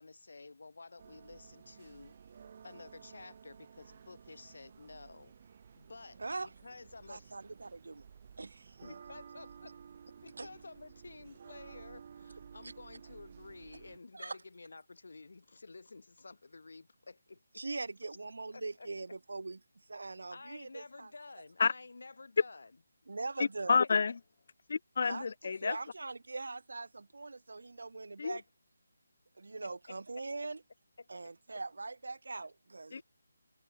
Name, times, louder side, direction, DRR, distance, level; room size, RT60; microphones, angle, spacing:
voice 1, 0.0-2.2 2.6-5.5 5.7-7.4 8.8-9.8 10.2-17.6 18.5-18.9 20.3-22.7 29.6-29.7 31.0-31.1, left 3 dB, 60° left, 2.4 m, -52 dB
sound 1, 1.0-14.0, right 7 dB, 25° right, 4.2 m, -55 dB
voice 2, 6.2-6.5 7.1-8.0 8.4-8.9 10.4-10.5 14.1-14.4 17.6-19.6 19.9-21.1 23.1-23.8 25.1-25.2 25.6-28.4 29.4-30.6 31.1-33.0, right 3 dB, 70° right, 1.1 m, -42 dB
voice 3, 23.4-24.1 24.7-25.8 28.2-28.4 32.9-33.0, left 5 dB, 35° left, 0.4 m, -29 dB
hypercardioid pair, 180°, 0 cm